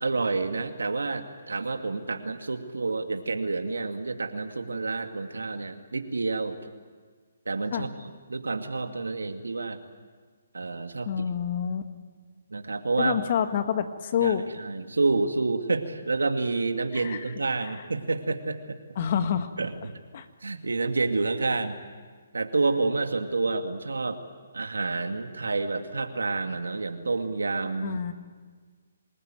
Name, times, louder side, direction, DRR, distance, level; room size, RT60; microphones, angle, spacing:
voice 1, 0.0-6.6 7.5-7.9 8.3-9.8 10.5-11.1 12.5-13.2 14.2-18.8 19.6-19.9 20.4-21.8 22.3-24.2 24.5-28.0, right 3 dB, 90° right, 6 dB, 2.3 m, -29 dB
voice 2, 11.1-11.8 13.0-14.5 16.9-17.2 17.6-17.8 19.0-19.5 20.1-20.3 27.8-28.1, left 8 dB, 45° left, 9 dB, 1.8 m, -27 dB
26.5 x 20.5 x 9.2 m, 1.5 s
hypercardioid pair, 150°, 0 cm